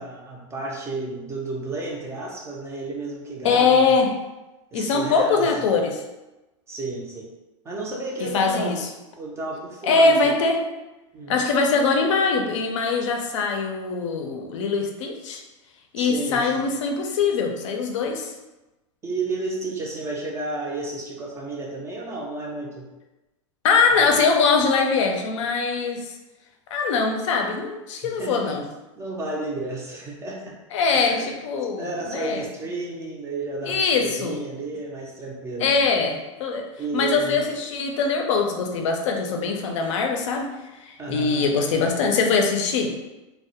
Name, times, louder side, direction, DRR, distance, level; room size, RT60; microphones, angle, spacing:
voice 1, 0.0-3.9 4.7-5.5 6.7-7.3 7.6-8.8 9.2-10.3 11.1-11.5 16.0-16.7 19.0-22.9 24.0-24.2 28.0-28.6 28.9-30.6 30.9-31.4 31.8-35.9 36.8-37.4 41.0-41.5, right 2 dB, 15° right, -2 dB, 0.4 m, -32 dB
voice 2, 3.4-4.1 4.7-6.0 8.2-8.9 9.8-10.7 11.3-15.4 15.9-18.3 23.6-26.1 26.7-28.7 30.7-31.2 31.4-32.4 33.6-34.4 35.6-36.6 36.9-40.5 40.8-42.9, left 4 dB, 70° left, 2 dB, 0.5 m, -22 dB
2.2 x 2.0 x 2.8 m, 1.0 s
supercardioid pair, 130°, 16 cm